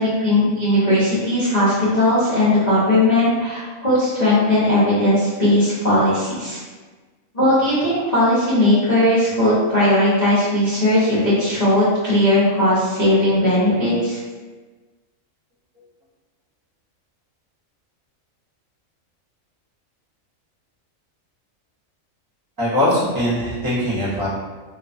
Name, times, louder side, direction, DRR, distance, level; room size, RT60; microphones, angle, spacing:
voice 1, 0.0-6.6 7.3-14.2, left 1 dB, 35° left, -13 dB, 0.8 m, -18 dB
voice 2, 22.6-24.3, left 1 dB, 20° right, -10 dB, 0.8 m, -21 dB
2.6 x 2.2 x 2.4 m, 1.3 s
omnidirectional pair, 1.4 m